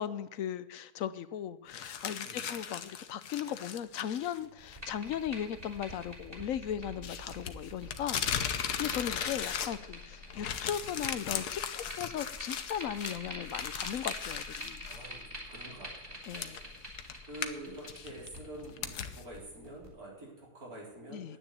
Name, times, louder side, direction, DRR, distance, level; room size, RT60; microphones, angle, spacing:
voice 1, 0.0-8.5 8.8-14.9 16.3-16.6 21.1-21.4, left 9 dB, 65° left, 15 dB, 1.0 m, -37 dB
sound 1, 1.7-4.4 4.7-4.8 7.0-10.0 10.3-15.0 15.4-15.5 16.2-19.2, left 8 dB, 85° left, 1.5 m, -37 dB
voice 2, 2.2-2.6 14.8-21.4, right 1 dB, 65° right, -3 dB, 4.5 m, -47 dB
sound 2, 4.6-19.9, equal, 25° right, 3.5 m, -46 dB
10.0 x 9.9 x 8.1 m, 1.0 s
omnidirectional pair, 1.6 m